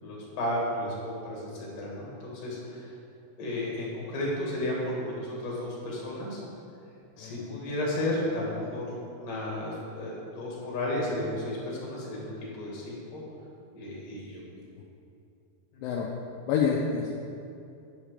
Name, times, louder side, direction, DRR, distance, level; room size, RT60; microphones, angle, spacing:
voice 1, 0.0-2.9 3.4-6.4 7.2-13.2 13.7-14.4 15.7-15.8, left 1 dB, 60° left, -4 dB, 3.9 m, -33 dB
voice 2, 7.2-7.5 15.8-16.1 16.5-17.1, left 6 dB, 80° left, -2 dB, 2.3 m, -27 dB
10.5 x 7.4 x 5.0 m, 2.7 s
omnidirectional pair, 4.3 m